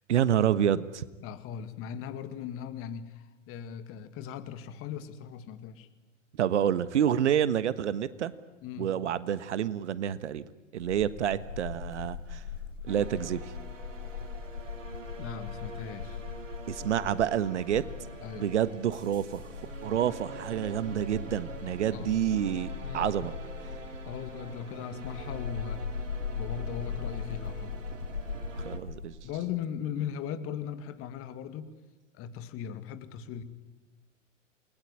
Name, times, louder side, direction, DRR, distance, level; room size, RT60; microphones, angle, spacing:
voice 1, 0.1-1.0 6.4-8.3 8.8-10.5 10.7-12.4 12.9-13.5 16.7-17.8 18.3-19.4 19.8-23.3 28.6-29.1, right 10 dB, 65° right, 15 dB, 1.4 m, -28 dB
voice 2, 1.2-5.9 8.6-9.0 15.2-16.2 18.2-18.5 21.9-22.2 22.8-23.1 24.1-25.8 26.3-27.7 29.2-31.7 32.1-33.4, left 8 dB, 35° left, 11 dB, 2.2 m, -38 dB
sound 1, 10.8-29.0, left 6 dB, 80° left, 4.1 m, -40 dB
sound 2, 12.9-28.8, right 4 dB, 80° right, 2.9 m, -45 dB
28.5 x 21.0 x 9.9 m, 1.2 s
figure-of-eight pair, 100°, 37 cm